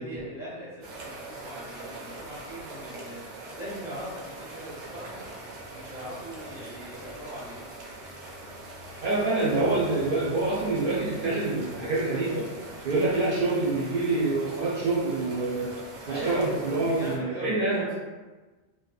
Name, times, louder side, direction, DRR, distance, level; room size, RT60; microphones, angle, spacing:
voice 1, 0.0-3.3 3.6-7.6 12.9-13.6 16.0-17.9, right 1 dB, 5° right, -7 dB, 0.6 m, -40 dB
sound 1, 0.8-17.2, right 2 dB, 90° right, 0.9 m, -42 dB
voice 2, 9.0-12.5 12.8-15.7 16.1-17.9, right 2 dB, 60° right, -7 dB, 0.7 m, -26 dB
2.7 x 2.1 x 2.3 m, 1.3 s
omnidirectional pair, 1.2 m